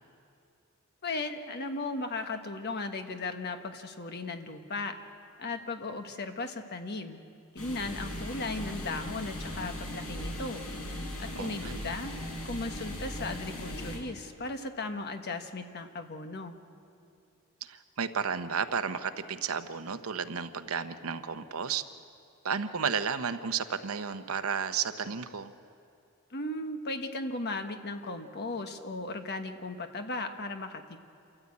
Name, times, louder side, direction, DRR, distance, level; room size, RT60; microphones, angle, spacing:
voice 1, 1.0-4.9 5.4-7.2 7.5-10.6 11.2-12.1 12.4-16.6 26.3-31.1, left 3 dB, 50° left, 6 dB, 1.3 m, -36 dB
sound 1, 7.6-14.0, left 1 dB, 80° left, 5.2 m, -38 dB
voice 2, 11.4-11.9 17.6-21.8 22.4-25.5, right 6 dB, 80° right, 10 dB, 0.9 m, -33 dB
28.0 x 14.0 x 8.5 m, 2.5 s
head